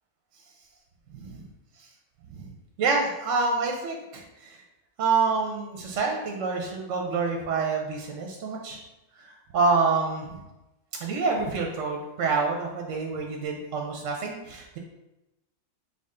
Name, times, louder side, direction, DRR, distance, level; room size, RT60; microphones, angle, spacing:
voice 1, 1.1-1.4 2.4-2.5 2.8-4.6 5.0-8.8 9.2-10.4 11.0-14.8, right 4 dB, 65° right, 1 dB, 0.8 m, -27 dB
4.9 x 2.2 x 3.6 m, 0.98 s
omnidirectional pair, 1.6 m